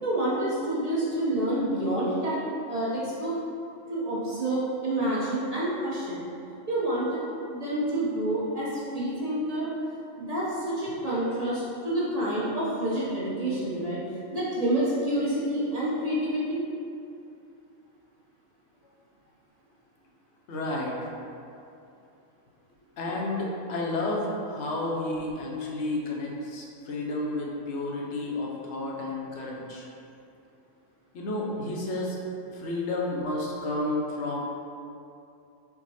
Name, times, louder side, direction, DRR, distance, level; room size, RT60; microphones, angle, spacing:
voice 1, 0.0-3.3 3.9-6.2 6.7-7.2 7.5-9.7 10.2-14.0 14.3-16.6, right 1 dB, 35° right, -8 dB, 0.7 m, -28 dB
voice 2, 20.5-21.1 23.0-29.9 31.1-32.2 32.5-34.4, left 2 dB, 65° left, -2 dB, 0.9 m, -31 dB
4.6 x 2.2 x 4.0 m, 2.7 s
omnidirectional pair, 1.4 m